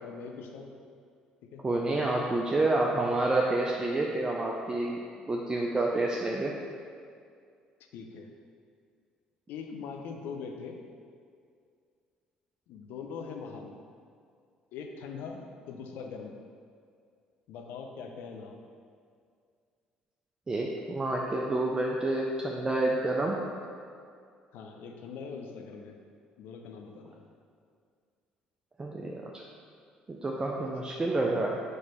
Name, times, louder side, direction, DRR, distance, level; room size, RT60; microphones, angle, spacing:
voice 1, 0.0-0.7 1.4-1.7 7.9-8.3 9.5-10.9 12.7-13.9 14.7-16.3 17.5-18.6 24.5-26.0 26.4-27.2, left 5 dB, 60° left, 3 dB, 0.4 m, -42 dB
voice 2, 1.6-6.5 20.5-23.4 28.8-29.4 30.1-31.6, right 2 dB, 20° right, -1 dB, 0.4 m, -29 dB
4.5 x 3.1 x 3.8 m, 2.2 s
figure-of-eight pair, 50°, 4 cm